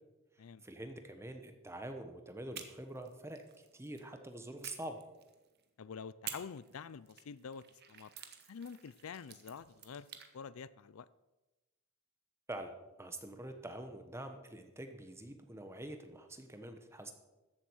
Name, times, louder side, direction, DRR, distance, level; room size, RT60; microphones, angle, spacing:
voice 1, 0.6-5.0 12.5-12.7 13.0-17.1, right 1 dB, 15° right, 6 dB, 1.2 m, -46 dB
sound 1, 2.5-4.1 4.6-5.6 6.2-10.3, right 9 dB, 50° right, 1.2 m, -51 dB
voice 2, 5.8-8.1 8.5-10.1 10.3-11.1, left 6 dB, 80° left, 17 dB, 0.5 m, -47 dB
14.0 x 7.7 x 6.3 m, 1.1 s
head